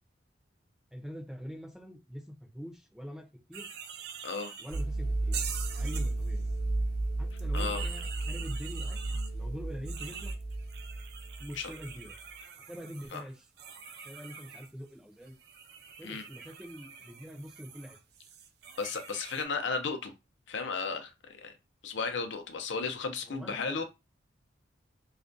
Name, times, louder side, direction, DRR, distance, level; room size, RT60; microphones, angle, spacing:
voice 1, 0.9-3.7 4.6-5.4 5.7-6.5 7.2-9.0 9.3-10.4 11.4-12.2 12.7-13.5 14.0-15.3 16.0-18.0 23.2-23.8, equal, 5° right, 0.5 m, -44 dB
sound 1, 3.5-4.8 5.3-6.5 7.3-9.3 9.9-14.7 15.2-19.5, right 7 dB, 60° right, 0.4 m, -45 dB
sound 2, 4.7-12.1, right 2 dB, 50° left, 0.8 m, -33 dB
voice 2, 7.5-7.8 11.6-11.7 13.1-13.2 16.0-16.2 18.8-20.1 20.5-21.1 21.4-21.5 21.8-23.8, left 4 dB, 85° left, 0.6 m, -34 dB
2.4 x 2.2 x 2.5 m
head